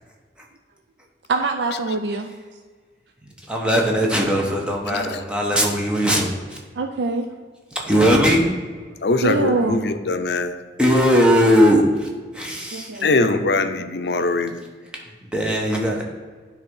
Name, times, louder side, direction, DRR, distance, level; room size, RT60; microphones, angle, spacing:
voice 1, 1.3-2.3 4.9-5.2 6.8-7.3 9.2-9.8 12.7-13.5, right 3 dB, 80° right, 5 dB, 0.5 m, -25 dB
voice 2, 3.2-6.6 7.7-8.4 10.8-12.1 12.3-13.0 14.9-16.0, equal, 5° right, -1 dB, 1.0 m, -19 dB
voice 3, 9.0-10.6 13.0-14.6, left 3 dB, 70° left, 9 dB, 0.5 m, -22 dB
9.6 x 3.5 x 5.4 m, 1.5 s
head